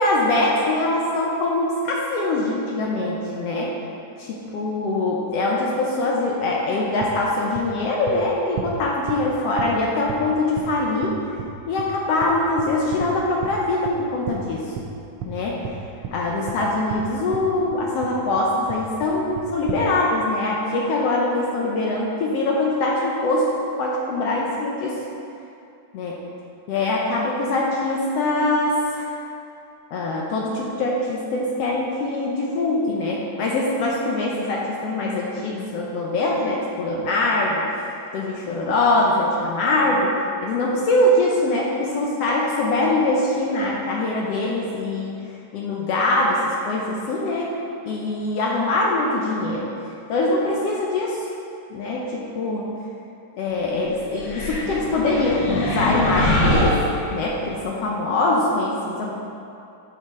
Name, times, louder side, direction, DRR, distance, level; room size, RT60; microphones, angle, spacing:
voice 1, 0.0-3.7 4.2-11.2 11.7-14.7 15.3-15.6 16.1-23.5 23.8-25.0 25.9-26.2 26.7-29.1 29.9-37.7 38.1-40.2 40.4-45.1 45.5-49.7 50.1-51.3 51.7-52.7 53.4-56.8 57.1-59.1, left 2 dB, 75° left, -2 dB, 1.5 m, -23 dB
sound 1, 7.0-7.1 7.5-7.6 8.1-8.2 8.6-8.7 9.1-9.2 9.6-9.7 10.1-10.2 10.6-10.7 11.0-11.1 11.4-11.5 11.8-11.9 12.2-12.3 12.6-13.1 13.4-13.5 13.8-13.9 14.3-14.4 14.8-14.9 15.2-15.3 15.6-15.7 16.0-16.1 16.5-16.6 16.9-17.0 17.3-17.5 17.7-18.1 18.4-18.5 18.7-19.1 19.4-19.8, right 8 dB, 75° right, 1.5 m, -32 dB
sound 2, 54.2-57.5, left 1 dB, 55° left, 2.0 m, -23 dB
11.5 x 5.8 x 3.7 m, 2.6 s
omnidirectional pair, 3.6 m